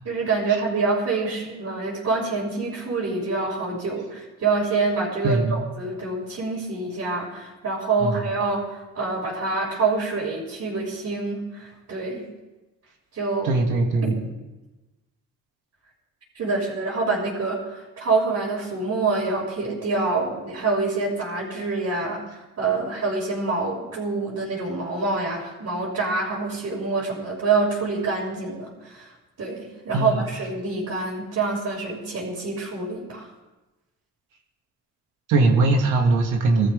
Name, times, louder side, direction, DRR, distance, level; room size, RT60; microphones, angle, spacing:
voice 1, 0.0-12.2 13.1-13.5 14.0-14.1 16.3-22.2 22.6-29.1 29.4-33.3, right 3 dB, 60° right, -8 dB, 5.7 m, -26 dB
voice 2, 5.2-5.6 8.0-8.3 13.4-14.3 29.9-30.2 35.3-36.7, right 3 dB, 90° right, 2 dB, 2.3 m, -21 dB
21.0 x 14.0 x 3.6 m, 1.1 s
cardioid pair, 90°, 30 cm